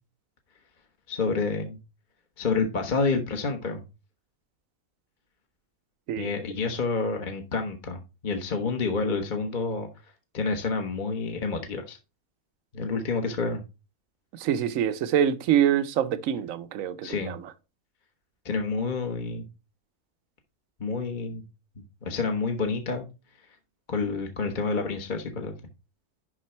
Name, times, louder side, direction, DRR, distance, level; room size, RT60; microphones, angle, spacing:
voice 1, 1.1-1.8 2.4-3.8 6.2-9.9 10.3-12.0 12.7-13.6 17.0-17.3 18.4-19.4 20.8-21.4 22.0-23.0 23.9-25.5, left 4 dB, 35° left, 1.1 m, -28 dB
voice 2, 14.3-17.5, right 9 dB, 70° right, 1.1 m, -25 dB
11.0 x 3.8 x 4.3 m
omnidirectional pair, 1.5 m